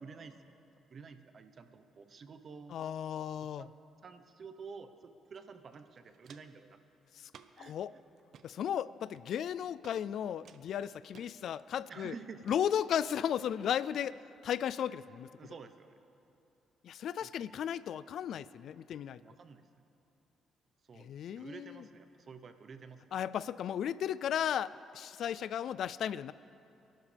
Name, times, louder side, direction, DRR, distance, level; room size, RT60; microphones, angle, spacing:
voice 1, 0.0-0.6 0.9-2.8 3.4-6.8 7.6-7.8 11.9-12.4 15.4-15.9 17.2-17.5 19.2-19.6 20.9-21.1 21.4-23.0, right 5 dB, 50° right, 9 dB, 1.0 m, -50 dB
voice 2, 2.7-3.7 7.2-7.3 7.6-7.9 8.4-12.1 12.5-15.3 16.8-19.2 21.0-21.8 23.1-26.3, left 9 dB, 70° left, 18 dB, 0.3 m, -35 dB
Walk footsteps, 5.3-5.4 5.7-6.6 7.3-7.7 8.2-8.5 9.1-9.5 9.8-10.0 10.5-11.3 11.8-12.1 12.4-12.6 13.1-13.2, right 8 dB, 70° right, 0.7 m, -57 dB
27.0 x 12.0 x 3.4 m, 2.8 s
cardioid pair, 90°, 0 cm